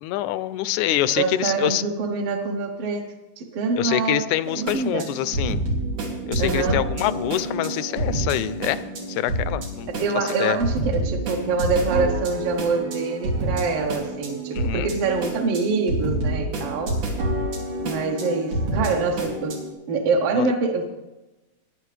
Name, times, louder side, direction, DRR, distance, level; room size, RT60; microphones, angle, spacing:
voice 1, 0.0-1.8 3.8-5.6 6.3-8.8 9.1-10.6 14.5-14.9 20.3-20.5, left 14 dB, 80° left, 15 dB, 1.9 m, -25 dB
voice 2, 0.9-3.1 3.4-4.3 4.5-5.1 6.4-6.9 9.9-16.9 17.8-19.6 19.9-20.8, right 4 dB, 65° right, 1 dB, 1.6 m, -25 dB
sound 1, 4.4-19.7, right 1 dB, 85° right, 4.2 m, -28 dB
21.0 x 10.5 x 3.3 m, 1.1 s
omnidirectional pair, 3.5 m